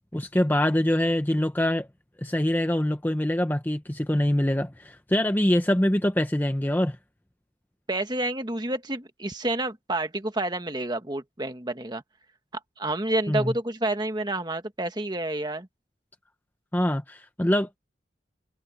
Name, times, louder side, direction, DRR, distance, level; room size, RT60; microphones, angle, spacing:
voice 1, 0.1-1.9 2.2-7.0 13.3-13.5 16.7-17.7, left 1 dB, 10° left, 0.8 m, -24 dB
voice 2, 7.9-12.0 12.8-15.7, right 1 dB, 25° right, 1.6 m, -29 dB
head